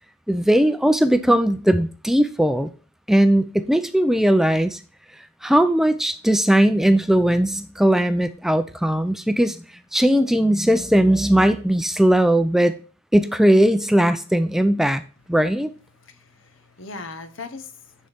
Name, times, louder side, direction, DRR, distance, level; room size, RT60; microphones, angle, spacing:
voice 1, 0.3-2.7 3.1-4.8 5.4-9.6 9.9-12.7 13.1-15.0 15.3-15.7, right 1 dB, ahead, 0.4 m, -18 dB
voice 2, 15.9-18.1, left 3 dB, 75° left, 1.1 m, -39 dB
10.0 x 4.2 x 3.5 m
head